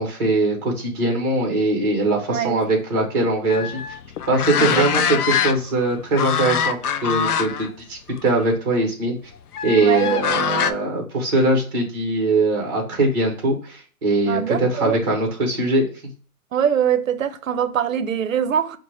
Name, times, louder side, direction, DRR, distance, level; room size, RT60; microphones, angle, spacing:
voice 1, 0.0-3.8 4.3-9.2 9.6-15.8, right 2 dB, 15° right, 1.0 m, -21 dB
voice 2, 2.3-2.6 2.9-3.0 4.6-4.8 5.1-5.2 9.8-10.8 14.3-15.0 16.5-18.8, right 9 dB, 65° right, 0.7 m, -23 dB
sound 1, 3.5-5.8 6.2-7.7 8.1-8.3 9.5-10.7, left 8 dB, 90° left, 0.6 m, -23 dB
5.1 x 2.1 x 3.2 m
hypercardioid pair, 165°, 44 cm